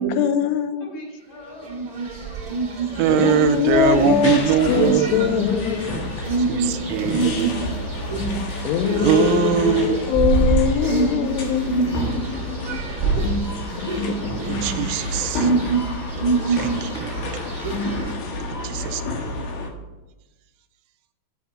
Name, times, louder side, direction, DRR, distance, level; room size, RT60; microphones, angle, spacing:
voice 1, 0.0-0.9 3.1-6.0 8.6-12.8 13.8-14.2, left 8 dB, 85° left, 10 dB, 3.2 m, -23 dB
voice 2, 0.8-1.8 3.8-5.5 6.2-8.2 9.0-9.5 10.0-10.3 12.4-13.9, left 1 dB, 40° left, -1 dB, 4.4 m, -41 dB
sound 1, 1.6-18.1, right 3 dB, 40° right, 1.2 m, -26 dB
voice 3, 3.0-5.1 6.5-7.8 9.0-10.0 14.5-15.5 16.5-17.4 18.5-19.4, right 9 dB, 90° right, 9 dB, 3.1 m, -22 dB
sound 2, 3.7-19.7, left 2 dB, 60° left, 3.0 m, -31 dB
8.4 x 7.4 x 8.7 m, 1.1 s
omnidirectional pair, 5.5 m